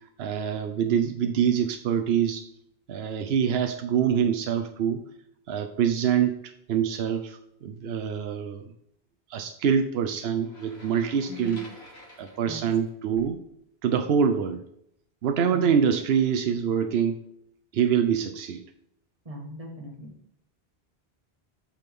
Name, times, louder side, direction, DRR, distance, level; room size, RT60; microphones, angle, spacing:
voice 1, 0.2-2.4 2.9-5.0 5.5-8.7 9.3-11.7 12.2-13.4 13.8-14.6 15.2-17.2 17.7-18.6, right 7 dB, 75° right, 7 dB, 0.9 m, -25 dB
sound 1, 10.4-13.4, equal, 85° left, 2.0 m, -50 dB
voice 2, 11.3-11.6 12.4-12.6 15.5-15.7 19.2-20.1, equal, 35° right, 0 dB, 1.7 m, -39 dB
8.7 x 6.0 x 3.6 m, 0.72 s
omnidirectional pair, 1.0 m